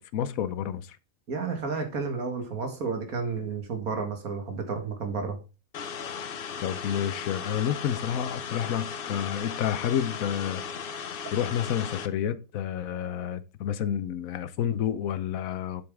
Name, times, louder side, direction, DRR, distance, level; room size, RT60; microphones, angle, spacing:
voice 1, 0.1-1.0 6.6-10.6 11.3-15.8, left 9 dB, 80° left, 1.2 m, -29 dB
voice 2, 1.3-5.4, right 4 dB, 90° right, 2.2 m, -31 dB
sound 1, 5.7-12.1, left 6 dB, 50° left, 0.7 m, -36 dB
7.8 x 7.0 x 3.6 m
omnidirectional pair, 1.5 m